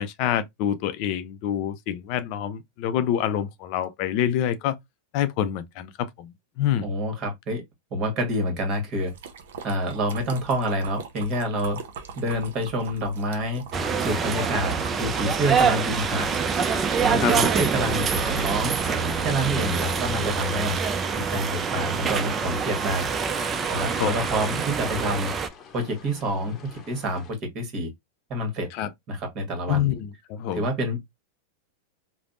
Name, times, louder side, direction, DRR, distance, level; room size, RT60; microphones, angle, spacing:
voice 1, 0.0-4.8 5.1-6.9 17.2-17.3 24.0-24.1 28.7-28.9 29.7-30.6, left 10 dB, 55° left, 0.4 m, -26 dB
voice 2, 6.8-7.6 7.9-9.1 9.6-11.8 12.1-13.6 14.0-16.4 17.0-18.8 19.2-20.8 21.1-23.1 23.7-25.3 25.7-27.9 28.3-28.7 29.1-29.9 30.5-31.0, right 1 dB, 40° right, 1.2 m, -27 dB
sound 1, 9.1-16.8, right 6 dB, 70° right, 0.6 m, -41 dB
sound 2, 13.7-25.5, right 5 dB, 25° right, 0.4 m, -25 dB
sound 3, 17.8-27.3, left 6 dB, 30° left, 0.8 m, -48 dB
3.3 x 2.0 x 2.5 m
hypercardioid pair, 110°, 0 cm